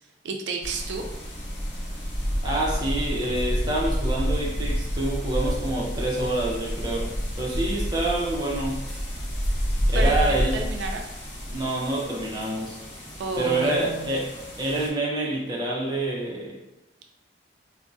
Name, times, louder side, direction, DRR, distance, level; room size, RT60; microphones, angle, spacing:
voice 1, 0.2-1.1 9.9-11.0 13.2-14.1, right 3 dB, 75° right, 3 dB, 0.4 m, -31 dB
sound 1, 0.6-14.9, equal, 75° left, 0.9 m, -29 dB
voice 2, 2.4-8.8 9.9-10.6 11.5-12.8 13.4-14.3 14.6-16.6, right 2 dB, 25° right, -4 dB, 0.5 m, -27 dB
3.4 x 2.0 x 2.5 m, 0.96 s
head